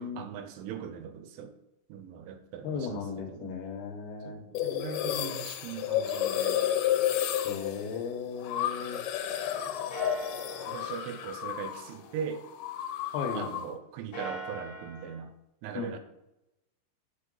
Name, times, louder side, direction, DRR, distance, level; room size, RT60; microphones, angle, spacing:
voice 1, 0.0-1.5 1.9-3.5 4.2-6.6 10.7-12.4 13.3-15.3 15.6-16.0, right 7 dB, 80° right, 8 dB, 3.2 m, -40 dB
voice 2, 2.6-4.4 7.4-9.0 13.1-13.5 15.8-16.0, left 5 dB, 75° left, 3 dB, 3.4 m, -36 dB
sound 1, 4.6-12.0 12.2-13.8, left 11 dB, 90° left, 3.5 m, -31 dB
sound 2, 7.8-9.5 9.9-13.4 13.9-15.2, right 1 dB, 50° left, 1.5 m, -44 dB
8.4 x 6.3 x 5.4 m, 0.91 s
omnidirectional pair, 5.6 m